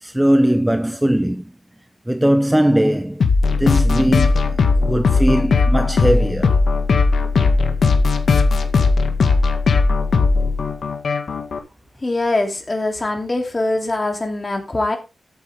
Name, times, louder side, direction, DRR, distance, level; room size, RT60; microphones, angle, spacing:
voice 1, 0.0-1.4 2.1-3.2 3.6-6.6, right 1 dB, 5° right, 0.8 m, -19 dB
sound 1, 3.2-11.6, left 4 dB, 70° left, 1.9 m, -17 dB
voice 2, 12.0-15.0, left 2 dB, 25° left, 3.0 m, -22 dB
13.5 x 8.7 x 3.5 m
wide cardioid pair, 140°, 0 cm